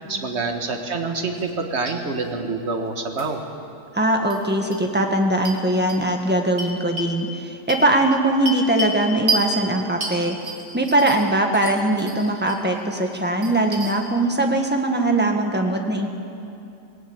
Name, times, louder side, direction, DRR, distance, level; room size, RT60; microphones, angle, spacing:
voice 1, 0.1-3.4, right 3 dB, 40° right, 4 dB, 1.8 m, -26 dB
sound 1, 1.3-1.6 1.9-2.0 3.2-3.3 4.3-4.4 4.7-4.8 5.4-5.6 5.9-6.0 6.6-7.1 7.7-9.0 9.3-9.5 10.0-11.3 11.5-12.6 13.0-13.9, right 2 dB, 70° right, 3.1 m, -29 dB
voice 2, 3.9-10.4 10.7-16.1, right 1 dB, 5° right, 3 dB, 1.5 m, -21 dB
19.0 x 17.5 x 8.8 m, 2.7 s
omnidirectional pair, 1.9 m